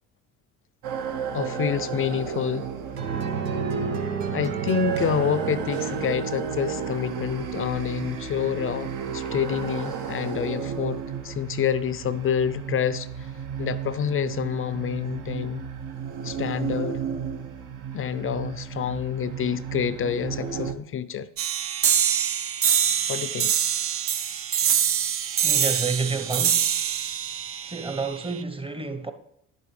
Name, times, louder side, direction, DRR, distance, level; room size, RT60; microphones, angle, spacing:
sound 1, 0.8-20.7, right 7 dB, 55° right, 1.0 m, -33 dB
voice 1, 1.3-2.7 4.3-11.0 11.2-13.1 13.6-15.6 16.2-17.0 17.9-21.3 23.1-23.6, left 8 dB, 35° left, 0.5 m, -27 dB
sound 2, 3.0-7.1, right 6 dB, 85° right, 1.1 m, -30 dB
sound 3, 21.4-28.4, right 9 dB, 35° right, 0.6 m, -24 dB
voice 2, 25.4-26.8 27.6-29.1, right 4 dB, 15° right, 1.0 m, -30 dB
10.5 x 8.2 x 3.3 m
hypercardioid pair, 60°, 37 cm